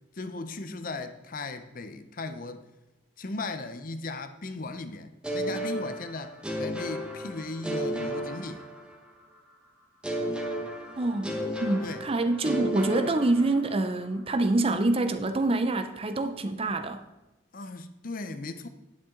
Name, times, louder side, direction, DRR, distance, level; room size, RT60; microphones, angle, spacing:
voice 1, 0.1-2.6 3.2-8.6 11.8-12.0 17.5-18.7, left 3 dB, 40° left, 0.6 m, -37 dB
sound 1, 5.2-9.2 10.0-13.9, equal, 5° right, 1.1 m, -33 dB
voice 2, 11.0-11.3 11.6-17.0, right 2 dB, 25° right, 0.5 m, -26 dB
10.0 x 8.5 x 3.8 m
head